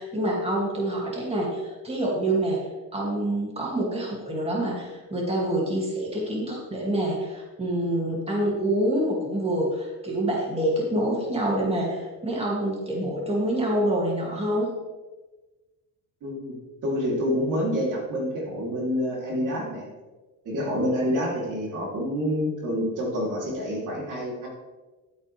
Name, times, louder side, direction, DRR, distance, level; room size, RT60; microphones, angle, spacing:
voice 1, 0.0-2.6 2.9-14.7, right 1 dB, 20° right, -3 dB, 2.5 m, -26 dB
voice 2, 16.2-19.9 20.5-24.5, equal, 65° right, -2 dB, 3.3 m, -27 dB
12.5 x 8.6 x 3.4 m, 1.2 s
cardioid pair, 130°, 33 cm